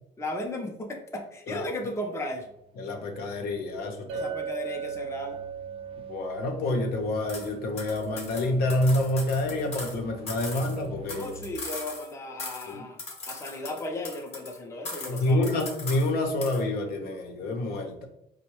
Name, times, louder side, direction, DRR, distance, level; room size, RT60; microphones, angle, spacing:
voice 1, 0.2-2.5 4.1-5.4 11.1-13.0 13.3-15.6, left 1 dB, 15° left, 2 dB, 0.5 m, -35 dB
sound 1, 2.0-11.6, equal, 35° right, 0.4 m, -48 dB
voice 2, 2.8-4.3 6.1-11.3 12.7-12.8 15.1-18.1, left 1 dB, 65° left, 4 dB, 0.6 m, -28 dB
Chink clink, 4.1-8.3, right 7 dB, 85° right, 0.5 m, -38 dB
sound 2, 7.3-7.5 7.8-10.0 10.3-12.1 12.4-12.7 13.0-14.6 14.8-16.1 16.4-16.6, left 3 dB, 40° left, 0.9 m, -39 dB
4.5 x 2.1 x 2.9 m, 0.79 s
cardioid pair, 110°, 17 cm